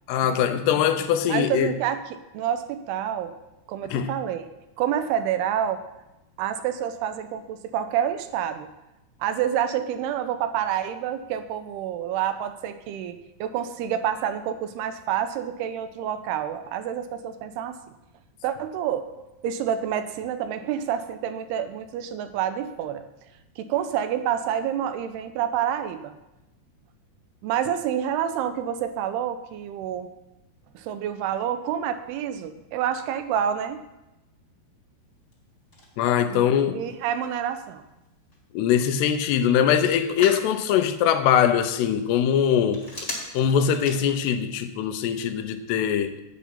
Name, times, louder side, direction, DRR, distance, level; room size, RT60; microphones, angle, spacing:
voice 1, 0.1-1.7 3.9-4.2 36.0-36.8 38.5-42.9 43.3-46.2, left 9 dB, 85° left, 2.8 m, -22 dB
voice 2, 1.3-3.3 3.7-4.5 4.8-5.8 6.4-8.7 9.2-17.8 18.4-23.0 23.6-26.1 27.4-30.1 30.7-33.8 36.3-37.8, right 9 dB, 85° right, 2.6 m, -28 dB
Telephone, 35.0-44.6, left 1 dB, 20° left, 1.6 m, -43 dB
8.6 x 8.3 x 5.6 m
omnidirectional pair, 4.7 m